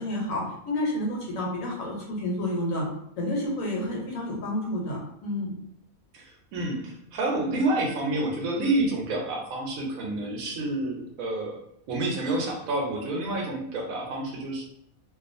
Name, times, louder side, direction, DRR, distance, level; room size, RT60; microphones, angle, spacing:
voice 1, 0.0-2.9 3.2-5.5, left 1 dB, 75° left, -2 dB, 1.1 m, -30 dB
voice 2, 6.1-11.6 11.9-14.6, right 2 dB, 85° right, 0 dB, 1.1 m, -29 dB
2.4 x 2.4 x 2.5 m, 0.75 s
omnidirectional pair, 1.4 m